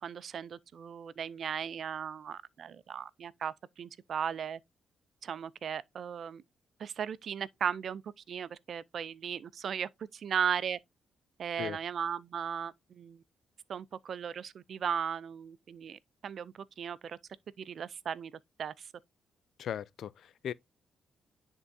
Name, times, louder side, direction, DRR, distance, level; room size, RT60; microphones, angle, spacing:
voice 1, 0.0-4.6 5.2-6.4 6.8-8.0 8.3-10.8 11.4-13.2 13.7-17.2 17.6-18.3 18.6-18.9, right 7 dB, 65° right, 0.4 m, -36 dB
voice 2, 19.6-20.5, left 9 dB, 75° left, 0.3 m, -38 dB
10.0 x 3.6 x 2.7 m
cardioid pair, 75°, 0 cm